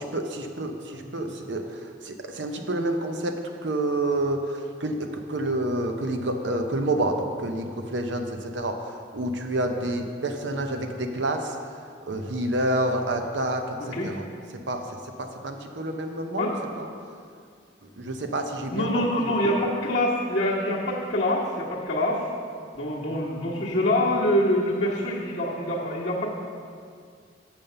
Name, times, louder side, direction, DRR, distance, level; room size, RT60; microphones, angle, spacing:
voice 1, 0.0-3.4 3.6-11.6 12.1-14.2 14.7-16.5 16.8-16.9 17.8-19.0, right 1 dB, 85° right, 5 dB, 0.8 m, -28 dB
voice 2, 13.8-14.1 16.4-16.5 18.7-22.2 22.7-26.3, left 1 dB, 45° left, -10 dB, 1.2 m, -25 dB
7.2 x 5.6 x 6.6 m, 2.2 s
head